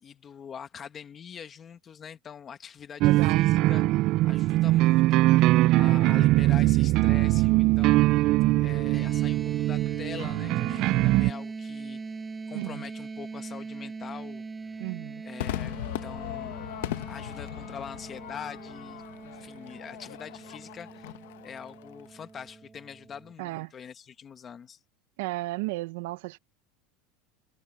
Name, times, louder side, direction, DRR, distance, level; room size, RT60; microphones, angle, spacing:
voice 1, 0.0-8.0 8.6-12.0 12.5-14.4 15.2-21.1 21.4-24.8, left 7 dB, 20° left, 1.4 m, -44 dB
sound 1, 3.0-11.3, right 18 dB, 40° right, 0.3 m, -22 dB
voice 2, 3.0-3.5 12.5-12.8 14.8-15.2 23.4-23.7 25.2-26.4, right 21 dB, 65° right, 0.8 m, -34 dB
sound 2, 8.9-23.3, right 4 dB, 10° right, 7.9 m, -41 dB
Crowd / Fireworks, 15.4-21.9, left 15 dB, 85° left, 1.4 m, -38 dB
supercardioid pair, 175°, 0 cm